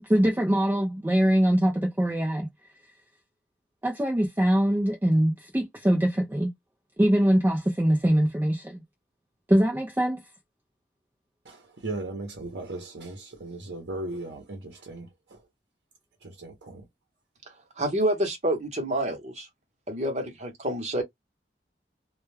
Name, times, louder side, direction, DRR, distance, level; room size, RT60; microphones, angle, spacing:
voice 1, 0.0-2.5 3.8-6.5 7.0-8.8 9.5-10.2, equal, 10° right, 0.4 m, -23 dB
voice 2, 11.4-15.4 16.2-16.9, right 2 dB, 90° right, 0.7 m, -37 dB
voice 3, 17.8-19.5 19.9-21.0, right 1 dB, 40° right, 0.9 m, -28 dB
2.2 x 2.1 x 3.1 m
head